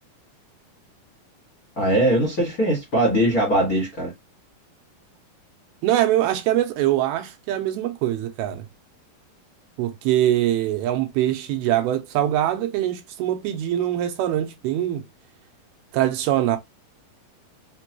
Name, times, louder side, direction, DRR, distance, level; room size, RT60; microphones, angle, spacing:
voice 1, 1.8-4.1, right 1 dB, 60° left, 0.9 m, -21 dB
voice 2, 5.8-8.7 9.8-15.0 15.9-16.6, right 12 dB, 85° right, 2.5 m, -23 dB
5.9 x 2.2 x 2.9 m
omnidirectional pair, 4.5 m